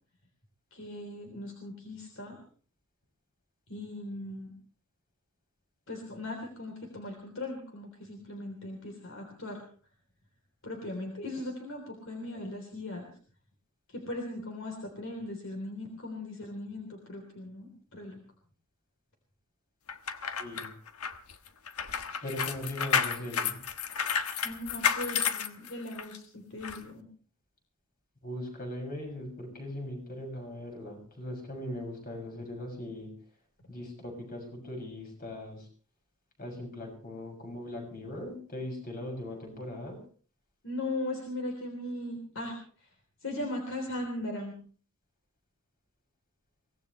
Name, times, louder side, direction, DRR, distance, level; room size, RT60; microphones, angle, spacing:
voice 1, 0.7-2.4 3.7-4.5 5.9-9.6 10.6-13.1 13.9-18.2 24.4-27.1 40.6-42.9 43.2-44.5, left 1 dB, 60° left, 2 dB, 3.6 m, -38 dB
sound 1, 19.9-26.2 26.6-26.8, left 7 dB, 80° left, 1.3 m, -31 dB
voice 2, 20.4-20.7 22.2-23.6 28.2-33.1 33.7-35.7 36.4-40.0, left 1 dB, 40° left, 2 dB, 6.6 m, -39 dB
23.5 x 18.0 x 3.3 m, 0.42 s
head